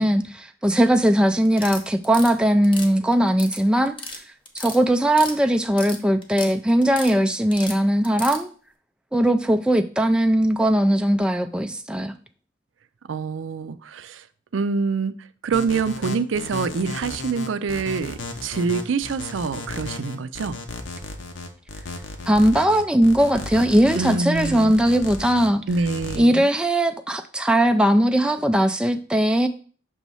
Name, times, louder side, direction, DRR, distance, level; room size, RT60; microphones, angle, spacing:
voice 1, 0.0-3.9 4.5-8.5 9.1-12.1 22.3-25.6 26.1-29.5, right 1 dB, 5° right, 7 dB, 0.3 m, -19 dB
sound 1, 1.4-2.3 2.6-3.6 3.9-4.2 4.5-5.4 5.6-6.5 6.8-7.1 7.5-8.4, left 3 dB, 30° left, 0.9 m, -34 dB
voice 2, 13.0-14.2 14.5-15.1 15.4-20.6 23.9-24.8 25.7-26.5, right 4 dB, 80° right, 13 dB, 0.4 m, -26 dB
sound 2, 15.5-26.2, left 3 dB, 75° left, 0.9 m, -34 dB
6.2 x 3.1 x 5.4 m, 0.41 s
head